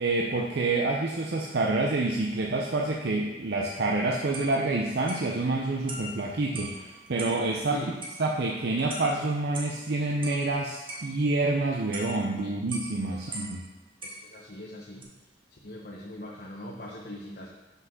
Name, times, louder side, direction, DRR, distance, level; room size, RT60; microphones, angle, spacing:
voice 1, 0.0-7.8 8.2-13.6, right 2 dB, 60° right, -1 dB, 0.6 m, -27 dB
sound 1, 4.3-7.5 8.0-9.9 10.2-13.6 14.0-14.7 15.0-15.1, right 1 dB, 30° right, 1.3 m, -42 dB
voice 2, 14.0-15.1 15.5-17.5, left 1 dB, 50° left, -4 dB, 1.1 m, -41 dB
6.0 x 5.7 x 6.0 m, 1.1 s
head